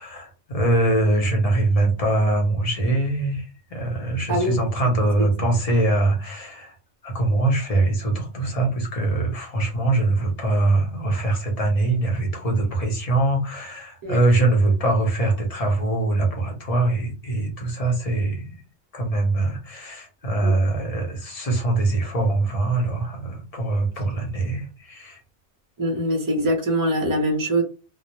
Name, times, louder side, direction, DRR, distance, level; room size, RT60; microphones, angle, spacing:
voice 1, 0.0-6.8 7.0-18.5 18.9-25.2, right 2 dB, 35° left, 0.7 m, -23 dB
voice 2, 4.3-4.6 14.0-14.2 20.4-20.5 25.8-27.6, right 1 dB, 25° right, 0.5 m, -23 dB
2.3 x 2.0 x 2.9 m
omnidirectional pair, 1.2 m